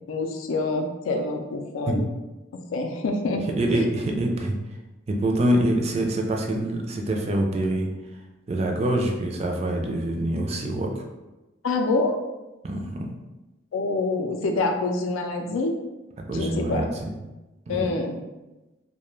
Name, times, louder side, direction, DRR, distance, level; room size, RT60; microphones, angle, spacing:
voice 1, 0.1-2.1 2.5-3.8 11.6-12.1 13.7-15.7 16.3-16.9 17.7-18.2, left 3 dB, 85° left, 4 dB, 0.4 m, -26 dB
voice 2, 3.6-4.5 5.1-7.9 8.5-11.0 12.6-13.1 16.3-17.1 17.7-17.9, right 1 dB, 30° right, 1 dB, 0.3 m, -25 dB
2.2 x 2.1 x 3.0 m, 1.1 s
head